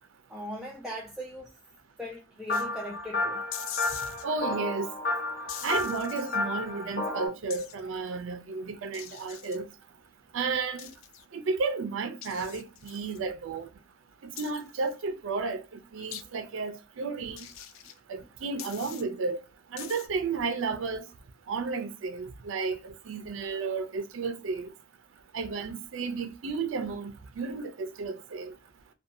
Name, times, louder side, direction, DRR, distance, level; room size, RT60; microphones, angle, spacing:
voice 1, 0.3-1.5 2.0-3.4, equal, ahead, 0.3 m, -39 dB
sound 1, 2.5-2.7 3.5-4.2 5.5-6.4 7.5-7.8 8.9-9.6 10.8-11.2 12.2-13.2 14.4-15.0 16.1-16.2 17.4-18.0 18.6-19.0 19.8-20.1, left 10 dB, 80° left, 0.4 m, -42 dB
sound 2, 2.5-7.3, left 2 dB, 45° left, 0.8 m, -32 dB
voice 2, 4.2-4.9 5.6-9.7 10.3-10.9 11.3-13.7 14.2-17.5 18.1-19.4 19.7-21.0 21.5-24.7 25.3-28.5, right 4 dB, 75° right, 0.4 m, -33 dB
2.6 x 2.2 x 2.5 m
head